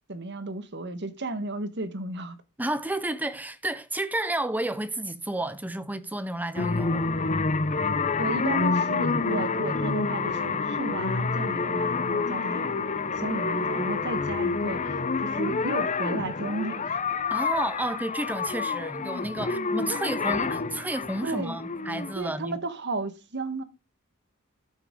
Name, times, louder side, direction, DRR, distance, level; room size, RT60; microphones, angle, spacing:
voice 1, 0.1-2.4 8.1-12.9 13.1-17.0 21.2-21.5 22.1-23.6, right 2 dB, 55° right, 1.4 m, -33 dB
voice 2, 2.6-7.1 17.3-22.6, right 1 dB, 10° right, 0.7 m, -31 dB
sound 1, 6.5-22.1, left 4 dB, 35° left, 0.7 m, -28 dB
12.0 x 7.5 x 3.8 m
head